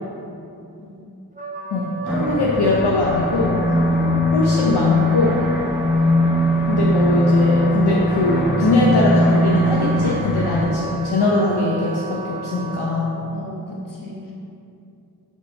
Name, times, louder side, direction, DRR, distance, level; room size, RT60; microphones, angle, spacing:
Wind instrument woodwind instrument, 1.3-12.9, equal, 20° right, 0.5 m, -33 dB
voice 1, 1.7-3.6 4.3-5.5 6.7-13.2, left 2 dB, 80° left, -4 dB, 0.7 m, -21 dB
sound 1, 2.1-10.6, left 1 dB, 5° right, 1.1 m, -20 dB
voice 2, 13.3-14.3, left 1 dB, 55° left, -4 dB, 1.3 m, -35 dB
5.0 x 4.1 x 5.4 m, 2.6 s
wide cardioid pair, 70°, 39 cm